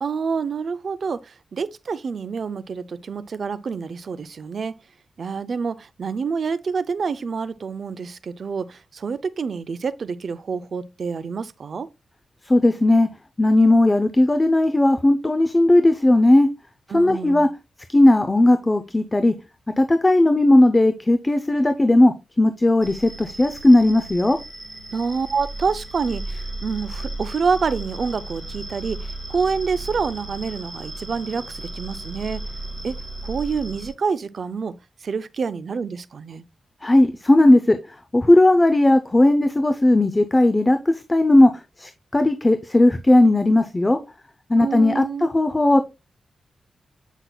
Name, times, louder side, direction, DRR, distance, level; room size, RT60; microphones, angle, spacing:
voice 1, 0.0-4.8 5.2-11.9 16.9-17.5 24.9-32.5 32.8-33.0 33.2-34.8 35.0-36.4 44.6-45.3, right 5 dB, 55° right, 0.5 m, -27 dB
voice 2, 12.5-13.1 13.4-16.5 16.9-17.5 17.9-19.3 19.8-24.4 36.8-37.8 38.1-41.5 41.8-44.0 44.5-45.8, left 1 dB, 20° left, 0.5 m, -16 dB
sound 1, 22.8-33.9, right 2 dB, 15° right, 3.6 m, -35 dB
8.0 x 5.8 x 2.3 m
wide cardioid pair, 110°, 0 cm